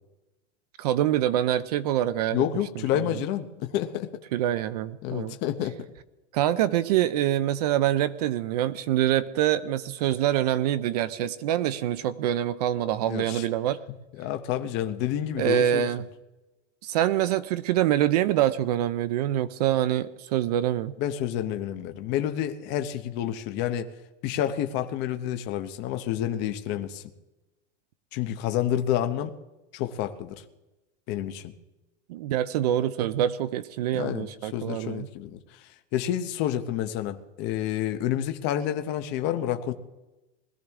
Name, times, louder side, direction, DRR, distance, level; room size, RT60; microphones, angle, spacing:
voice 1, 0.8-2.5 2.8-3.0 4.3-5.4 6.3-13.8 15.4-16.0 16.8-20.9 32.1-35.1, right 12 dB, 35° right, 0.4 m, -25 dB
voice 2, 2.3-4.2 5.0-5.8 13.1-13.5 13.9-15.9 21.0-23.9 24.2-27.0 28.1-29.3 29.7-30.4 31.1-31.5 33.9-35.4 35.9-39.7, left 11 dB, 30° left, 0.8 m, -29 dB
20.5 x 14.0 x 3.6 m
supercardioid pair, 170°, 36 cm